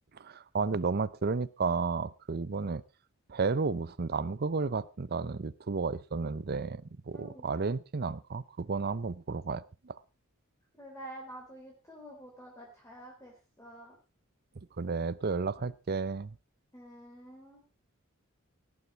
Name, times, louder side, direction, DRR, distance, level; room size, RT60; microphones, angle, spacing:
voice 1, 0.1-2.8 3.3-10.0 14.8-16.3, right 4 dB, 50° right, 17 dB, 0.6 m, -32 dB
voice 2, 7.1-7.5 10.8-14.0 16.7-17.6, right 1 dB, 15° left, -1 dB, 3.7 m, -48 dB
18.0 x 9.8 x 4.6 m, 0.32 s
head